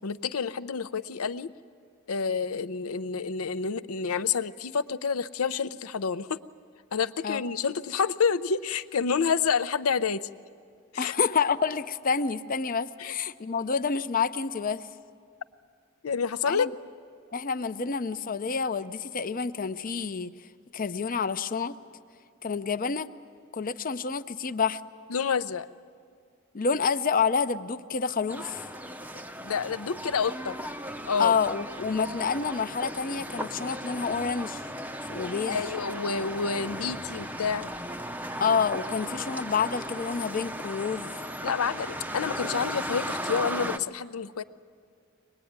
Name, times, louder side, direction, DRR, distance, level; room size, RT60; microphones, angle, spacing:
voice 1, 0.0-1.5 2.1-6.4 6.9-10.3 10.9-11.1 13.0-13.1 16.0-16.7 25.1-25.7 29.4-30.6 31.0-31.3 35.4-37.7 41.4-44.4, left 6 dB, 80° left, 14 dB, 0.6 m, -28 dB
voice 2, 11.0-14.9 16.5-16.7 17.3-20.3 20.7-21.8 22.4-23.1 23.5-24.8 26.5-28.7 31.2-34.6 35.1-35.6 38.4-41.2, left 5 dB, 40° left, 13 dB, 0.6 m, -28 dB
sound 1, 28.3-43.8, equal, 10° right, 0.6 m, -36 dB
23.5 x 20.5 x 9.5 m, 2.2 s
head